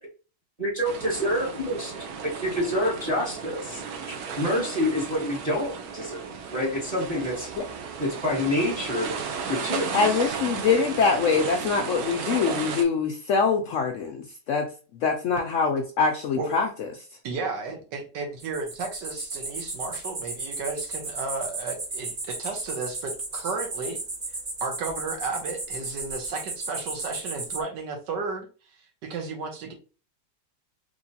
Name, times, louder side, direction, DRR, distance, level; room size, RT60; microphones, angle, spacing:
voice 1, 0.6-2.1 2.4-3.8 4.1-6.2 6.5-7.5 8.0-9.2 9.5-9.9, left 1 dB, 25° right, -4 dB, 1.1 m, -27 dB
sound 1, 0.8-12.8, right 6 dB, 65° right, 1.1 m, -34 dB
voice 2, 9.9-14.6 15.0-16.9, left 5 dB, 80° left, 4 dB, 0.6 m, -24 dB
voice 3, 17.2-24.0 24.6-28.5 29.0-29.7, right 4 dB, 85° right, 4 dB, 1.6 m, -33 dB
sound 2, 18.4-27.6, right 3 dB, 50° right, 0.4 m, -34 dB
3.7 x 3.1 x 2.7 m, 0.35 s
omnidirectional pair, 1.8 m